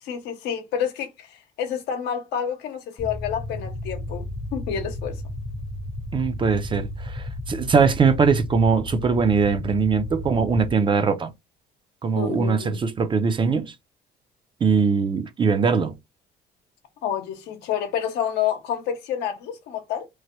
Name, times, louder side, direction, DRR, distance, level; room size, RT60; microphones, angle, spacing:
voice 1, 0.0-4.3 4.5-5.2 12.2-12.8 17.0-20.1, left 9 dB, 85° left, 0.8 m, -29 dB
sound 1, 3.0-10.7, left 1 dB, 35° left, 0.7 m, -34 dB
voice 2, 6.1-11.3 12.0-13.7 14.6-15.9, right 5 dB, 30° right, 0.5 m, -21 dB
3.1 x 2.2 x 2.9 m
cardioid pair, 110°, 17 cm